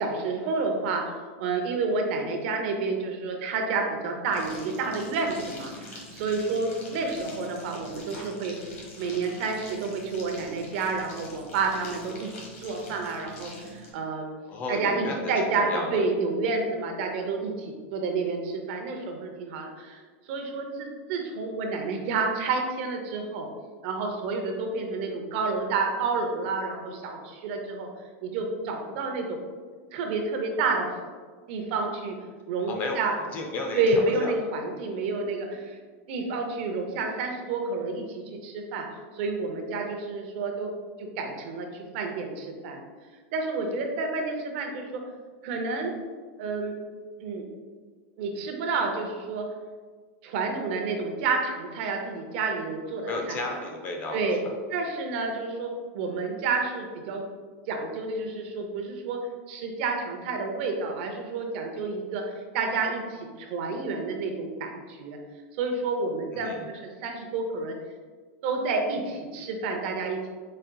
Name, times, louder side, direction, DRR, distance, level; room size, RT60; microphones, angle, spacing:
voice 1, 0.0-8.5 9.0-14.2 14.7-20.0 20.3-23.5 23.8-27.9 28.2-29.4 29.9-30.9 31.5-32.1 32.5-33.2 33.7-35.8 36.1-38.8 39.1-40.7 41.0-42.8 43.3-45.0 45.4-45.9 46.4-46.7 47.2-47.4 48.2-49.5 50.2-53.4 54.1-54.4 54.7-57.2 57.7-59.2 59.5-65.2 65.6-67.7 68.4-70.3, right 4 dB, 50° right, 3 dB, 0.6 m, -29 dB
sound 1, 4.2-13.9, equal, 85° left, 1.1 m, -44 dB
voice 2, 14.5-16.1 32.7-33.0 33.2-34.3 53.1-54.2 66.3-66.7, left 2 dB, 25° left, 2 dB, 0.4 m, -33 dB
4.1 x 3.8 x 2.2 m, 1.5 s
supercardioid pair, 160°, 7 cm